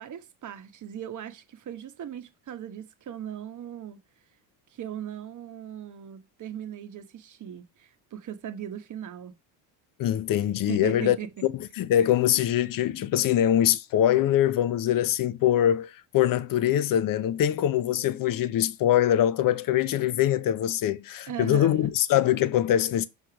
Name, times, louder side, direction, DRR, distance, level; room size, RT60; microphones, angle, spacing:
voice 1, 0.0-4.0 4.7-9.3 10.7-11.5 21.3-21.9, right 10 dB, 40° right, 1.1 m, -38 dB
voice 2, 10.0-11.2 11.5-23.1, left 11 dB, 45° left, 0.7 m, -23 dB
6.3 x 3.3 x 5.8 m
cardioid pair, 115°, 48 cm